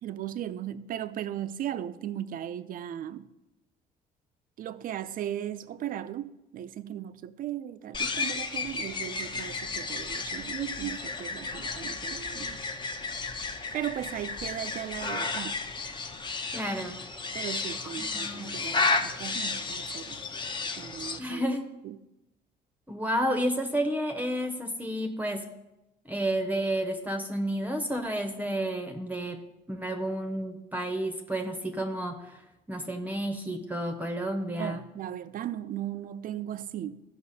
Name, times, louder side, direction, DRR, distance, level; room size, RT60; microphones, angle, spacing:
voice 1, 0.0-3.3 4.6-12.6 13.7-15.6 17.3-20.2 20.8-21.4 21.8-22.0 34.6-37.0, right 11 dB, 55° right, 0.5 m, -37 dB
sound 1, 7.9-21.2, left 3 dB, 30° left, 0.8 m, -33 dB
voice 2, 16.5-17.0 18.0-18.5 21.2-21.7 22.9-25.4 26.1-29.4 29.7-32.4 32.7-34.8, right 1 dB, 10° right, 0.8 m, -31 dB
14.5 x 5.7 x 4.2 m
cardioid pair, 110°, 17 cm